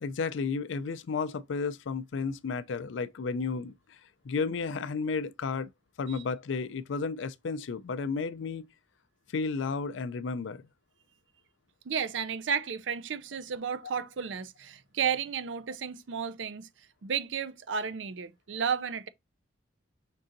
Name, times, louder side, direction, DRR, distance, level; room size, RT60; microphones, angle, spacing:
voice 1, 0.0-3.7 4.2-5.7 6.0-8.7 9.3-10.7, left 4 dB, 75° left, 0.4 m, -32 dB
voice 2, 11.9-16.7 17.0-19.1, right 7 dB, 75° right, 0.5 m, -33 dB
5.3 x 3.7 x 2.5 m
head